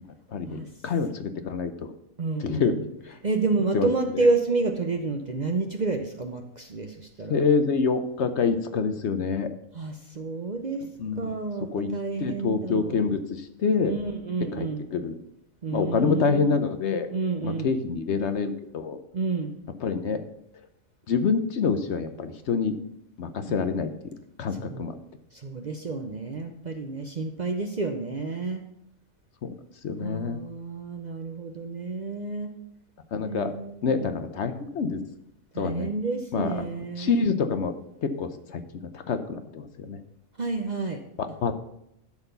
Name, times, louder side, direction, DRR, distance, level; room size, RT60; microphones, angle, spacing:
voice 1, 0.3-1.7 2.4-2.7 3.0-3.1 3.7-3.9 7.3-9.5 11.0-11.3 11.7-11.9 12.2-13.9 14.6-14.7 14.9-15.1 15.7-17.1 17.4-19.0 19.8-20.2 21.1-22.7 23.2-23.9 24.4-24.9 29.4-29.5 29.8-30.4 33.1-33.5 33.8-35.0 35.6-35.9 36.3-36.5 37.0-37.7 38.0-38.6 38.9-40.0 41.4-41.5, left 5 dB, 60° left, 9 dB, 1.0 m, -26 dB
voice 2, 2.2-2.9 3.2-7.4 9.7-10.8 11.2-13.0 13.9-14.8 15.6-16.6 17.1-17.7 19.1-19.5 23.5-23.6 24.5-24.9 25.3-28.6 30.0-32.5 33.2-34.1 35.5-37.1 40.4-41.0, right 3 dB, 45° right, 5 dB, 0.6 m, -29 dB
11.5 x 4.3 x 6.8 m, 0.77 s
omnidirectional pair, 1.4 m